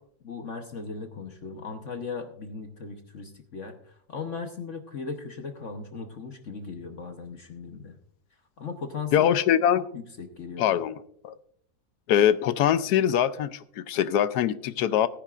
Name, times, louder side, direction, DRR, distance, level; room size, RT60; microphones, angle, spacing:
voice 1, 0.2-8.0 8.6-9.4 9.9-10.8, left 5 dB, 50° left, 5 dB, 1.1 m, -38 dB
voice 2, 9.1-9.8 10.6-11.0 11.2-11.3 12.1-15.1, left 10 dB, 70° left, 14 dB, 1.0 m, -23 dB
19.0 x 9.8 x 2.5 m, 0.64 s
omnidirectional pair, 2.0 m